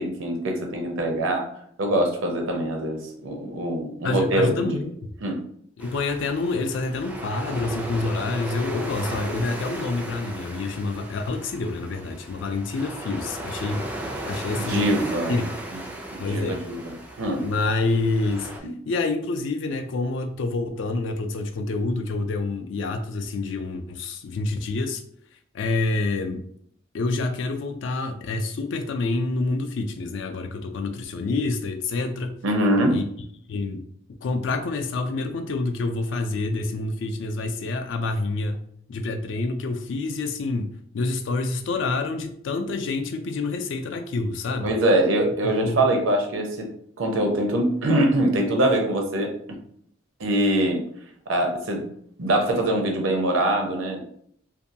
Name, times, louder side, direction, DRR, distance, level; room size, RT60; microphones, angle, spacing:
voice 1, 0.0-1.5 1.8-4.9 5.2-5.4 14.6-15.4 15.7-15.8 16.1-17.4 18.6-18.7 32.4-33.0 44.6-46.7 47.0-49.6 50.2-50.8 51.3-51.9 52.2-54.0, right 1 dB, 85° right, 3 dB, 0.6 m, -23 dB
voice 2, 4.0-5.0 5.8-13.8 14.2-14.9 15.3-15.5 16.2-16.6 17.4-25.0 25.5-26.4 26.9-32.3 32.9-33.0 33.5-33.8 34.2-38.6 38.9-44.7 45.6-45.9, left 3 dB, 70° left, 7 dB, 0.4 m, -27 dB
sound 1, 5.8-18.6, right 1 dB, 10° right, 0.3 m, -36 dB
2.6 x 2.2 x 2.6 m, 0.64 s
head